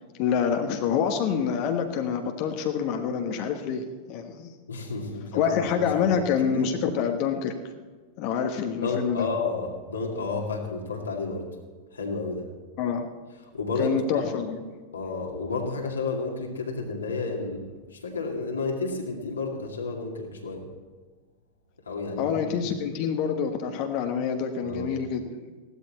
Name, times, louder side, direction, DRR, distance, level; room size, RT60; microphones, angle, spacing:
voice 1, 0.2-4.5 5.3-7.5 8.2-9.3 12.8-13.1 13.8-14.6 22.2-25.4, left 7 dB, 45° left, 5 dB, 1.3 m, -27 dB
voice 2, 4.7-6.2 8.8-11.5 11.9-12.5 13.5-14.2 14.9-20.7 21.9-22.7 24.6-24.9, left 3 dB, 75° left, -1 dB, 2.5 m, -31 dB
16.5 x 12.5 x 4.3 m, 1.4 s
figure-of-eight pair, 90°, 0 cm